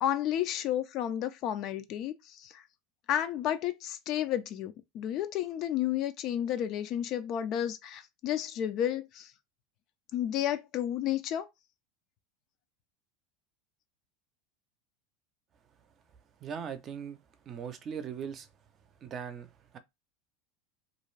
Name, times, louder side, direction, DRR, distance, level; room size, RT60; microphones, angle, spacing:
voice 1, 0.0-2.6 3.1-9.3 10.1-11.5, left 11 dB, 50° left, 0.4 m, -32 dB
voice 2, 16.4-17.2 17.5-18.5 19.0-19.8, right 7 dB, 40° right, 0.6 m, -39 dB
2.5 x 2.3 x 3.1 m
hypercardioid pair, 105°, 0 cm